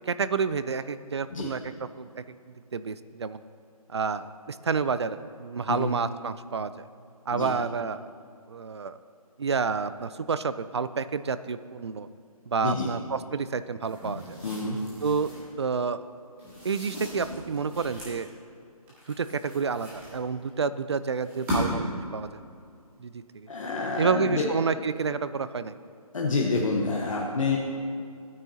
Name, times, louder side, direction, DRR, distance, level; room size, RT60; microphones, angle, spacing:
voice 1, 0.1-2.2 2.7-3.4 3.9-6.9 7.3-8.1 8.5-9.0 9.4-12.1 12.5-14.4 15.0-16.0 16.6-18.3 19.2-22.4 23.0-23.5 24.0-25.7, right 5 dB, 45° right, 14 dB, 0.4 m, -29 dB
sound 1, 13.8-15.5 16.4-18.2 18.9-20.5 21.1-22.0, equal, 10° right, 2.1 m, -36 dB
voice 2, 14.4-14.8 23.5-24.5 26.1-27.6, left 3 dB, 60° left, -2 dB, 1.2 m, -28 dB
16.5 x 9.4 x 2.8 m, 2.4 s
hypercardioid pair, 170°, 19 cm